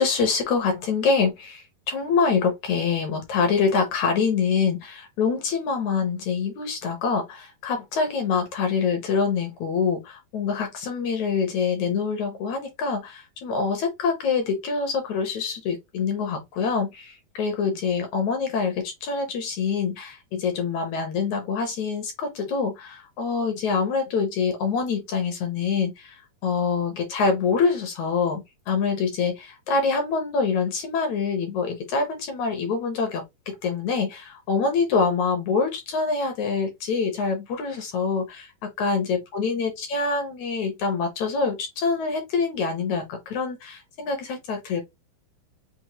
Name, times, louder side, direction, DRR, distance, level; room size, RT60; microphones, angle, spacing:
voice 1, 0.0-44.8, left 5 dB, 70° left, 1.9 m, -25 dB
6.0 x 2.3 x 2.8 m
omnidirectional pair, 4.3 m